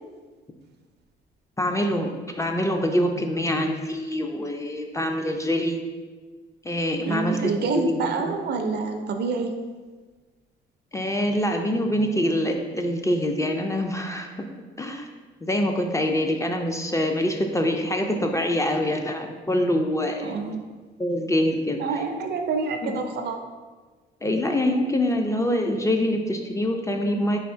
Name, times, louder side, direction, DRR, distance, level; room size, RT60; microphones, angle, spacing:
voice 1, 1.6-5.8 6.6-8.3 10.9-14.3 14.8-15.1 15.4-20.3 21.0-21.8 22.8-23.0 24.2-27.4, left 1 dB, 15° left, 3 dB, 0.3 m, -25 dB
voice 2, 7.0-9.5 20.2-20.6 21.8-23.4, right 4 dB, 55° right, 5 dB, 0.4 m, -27 dB
3.5 x 2.4 x 4.3 m, 1.4 s
cardioid pair, 90°, 20 cm